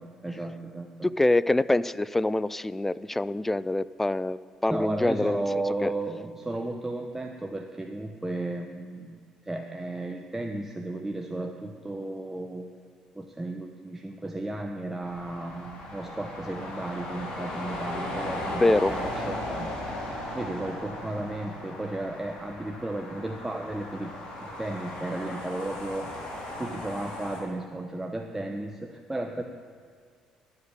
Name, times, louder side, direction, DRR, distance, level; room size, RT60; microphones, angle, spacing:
voice 1, 0.0-1.1 4.7-12.7 13.1-19.9 20.3-26.3 26.6-29.4, right 2 dB, 15° right, 3 dB, 0.9 m, -34 dB
voice 2, 1.0-4.4 4.6-5.4 5.8-5.9 18.6-18.9, left 2 dB, 10° left, 18 dB, 0.4 m, -25 dB
sound 1, 15.0-27.4, left 1 dB, 60° left, 4.0 m, -37 dB
13.0 x 8.2 x 6.8 m, 2.1 s
supercardioid pair, 70°, 2 cm